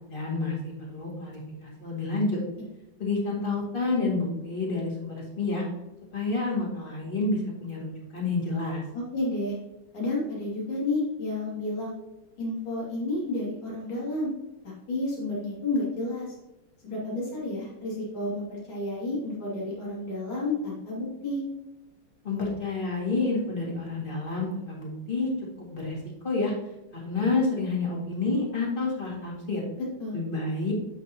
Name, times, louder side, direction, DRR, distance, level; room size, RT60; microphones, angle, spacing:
voice 1, 0.1-2.4 3.0-5.6 6.1-8.8 22.2-25.3 25.6-26.0 26.2-26.5 26.9-29.6 30.1-30.7, left 3 dB, 25° left, -4 dB, 2.3 m, -29 dB
voice 2, 8.9-9.6 9.9-11.9 12.4-14.3 14.6-16.4 16.8-21.4 30.0-30.2, left 2 dB, 75° left, -6 dB, 3.4 m, -31 dB
8.2 x 6.8 x 2.9 m, 0.98 s
omnidirectional pair, 2.2 m